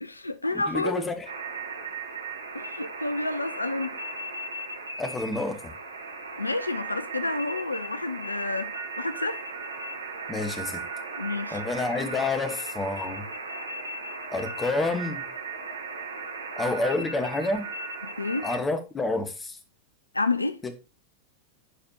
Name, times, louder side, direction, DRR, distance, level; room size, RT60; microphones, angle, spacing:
voice 1, 0.0-0.9 2.5-3.9 6.4-9.4 11.2-11.6 18.0-18.4 20.1-20.6, left 2 dB, 80° left, 0.5 m, -29 dB
voice 2, 0.7-1.3 5.0-5.7 10.3-10.8 11.5-13.2 14.3-15.2 16.6-17.7 18.4-19.6 20.6-20.8, left 2 dB, 15° left, 1.3 m, -29 dB
sound 1, 1.3-18.6, right 3 dB, 75° right, 1.3 m, -37 dB
11.5 x 4.9 x 2.8 m
figure-of-eight pair, 90°, 0 cm